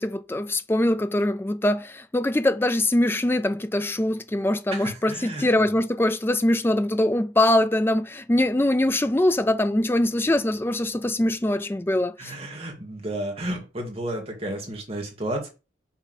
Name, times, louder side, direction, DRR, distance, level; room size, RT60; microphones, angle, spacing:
voice 1, 0.0-12.3, left 1 dB, 10° left, 0.4 m, -23 dB
voice 2, 4.7-5.8 12.2-15.5, right 1 dB, 30° right, 1.8 m, -32 dB
5.7 x 3.5 x 5.9 m
head